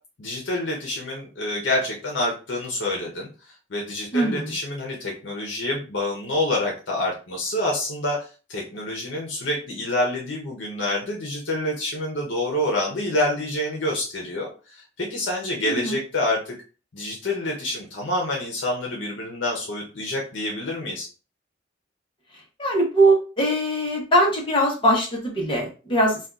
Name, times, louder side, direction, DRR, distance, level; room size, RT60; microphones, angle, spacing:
voice 1, 0.2-3.3 3.7-16.5 16.9-21.1, left 1 dB, 75° left, -2 dB, 0.8 m, -27 dB
voice 2, 4.1-4.5 15.6-16.0 22.6-26.2, right 1 dB, 30° left, -1 dB, 0.9 m, -21 dB
2.6 x 2.3 x 3.5 m, 0.34 s
head